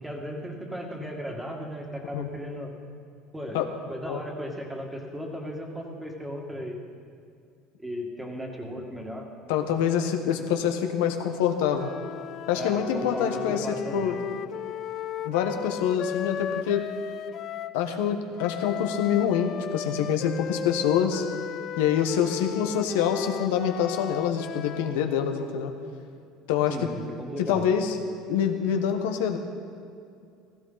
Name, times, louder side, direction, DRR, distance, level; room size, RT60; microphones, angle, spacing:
voice 1, 0.0-2.7 3.3-3.6 3.9-6.8 7.8-9.3 12.5-14.2 26.7-27.7, equal, 10° right, 1 dB, 2.1 m, -36 dB
voice 2, 9.5-11.9 12.5-13.7 13.9-14.2 15.2-16.9 17.7-21.3 21.8-25.7 26.5-26.8 27.4-28.0 28.3-29.4, left 8 dB, 85° left, 5 dB, 1.2 m, -26 dB
sound 1, 11.7-17.8 18.4-25.0, left 9 dB, 50° left, 0.4 m, -35 dB
16.0 x 14.0 x 4.1 m, 2.5 s
supercardioid pair, 105°, 0 cm